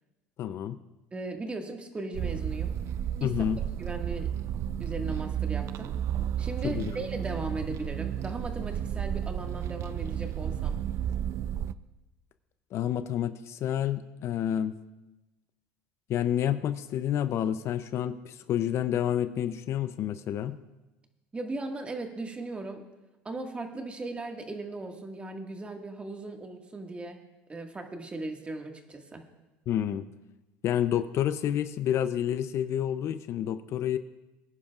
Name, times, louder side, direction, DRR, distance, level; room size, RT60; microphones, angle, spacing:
voice 1, 0.4-0.8 3.2-3.6 6.6-7.0 12.7-14.8 16.1-20.6 29.7-30.0 30.6-34.0, left 10 dB, 50° left, 12 dB, 0.6 m, -29 dB
voice 2, 1.1-2.8 3.2-3.3 3.8-4.3 4.8-6.0 6.4-10.8 21.3-22.8 23.3-27.2 27.5-29.2, right 2 dB, 20° right, 3 dB, 1.8 m, -37 dB
slowed voices scratches and pops, 2.1-11.7, right 10 dB, 50° right, 0.4 m, -32 dB
23.0 x 10.5 x 2.4 m, 1.0 s
supercardioid pair, 95°, 6 cm